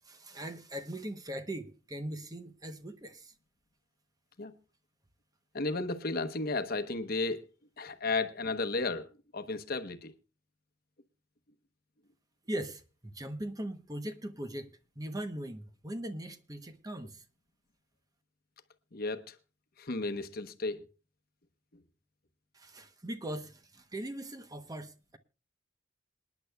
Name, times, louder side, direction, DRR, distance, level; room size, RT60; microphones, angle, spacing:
voice 1, 0.0-3.3 12.5-17.2 22.5-25.2, right 1 dB, 20° right, 0.8 m, -40 dB
voice 2, 5.5-7.5 7.8-9.1 9.3-10.1 18.9-19.3 19.8-20.9, left 3 dB, 50° left, 1.0 m, -33 dB
27.5 x 10.0 x 2.3 m
head